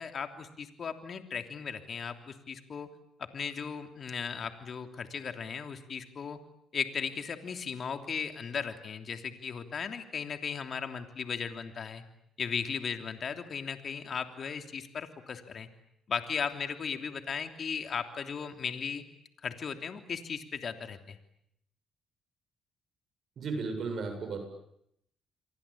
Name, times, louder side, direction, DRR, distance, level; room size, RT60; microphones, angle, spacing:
voice 1, 0.0-2.9 3.3-6.4 6.7-12.0 12.4-15.7 16.1-19.0 19.4-21.2, left 6 dB, 50° left, 7 dB, 3.2 m, -36 dB
voice 2, 23.4-24.4, right 4 dB, 60° right, 6 dB, 7.6 m, -34 dB
29.0 x 23.5 x 8.7 m, 0.76 s
cardioid pair, 80°, 0 cm